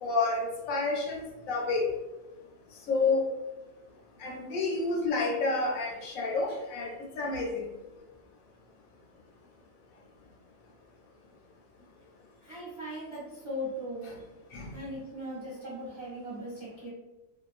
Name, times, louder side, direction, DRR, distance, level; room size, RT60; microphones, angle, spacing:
voice 1, 0.0-1.8 2.9-3.2 4.2-6.9 7.2-7.6 14.5-14.7, left 3 dB, 70° left, -1 dB, 0.9 m, -29 dB
voice 2, 12.4-14.1 14.7-16.9, equal, 35° right, -8 dB, 0.4 m, -39 dB
2.4 x 2.2 x 2.4 m, 1.0 s
omnidirectional pair, 1.6 m